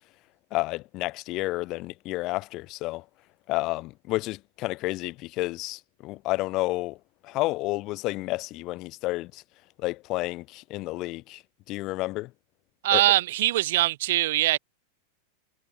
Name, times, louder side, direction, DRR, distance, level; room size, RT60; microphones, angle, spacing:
voice 1, 0.5-3.0 3.5-7.0 7.2-9.4 9.8-11.4 11.7-12.3 12.9-13.0, left 20 dB, 40° left, 0.6 m, -30 dB
voice 2, 12.8-14.6, right 16 dB, 55° right, 1.4 m, -22 dB
figure-of-eight pair, 90°, 0 cm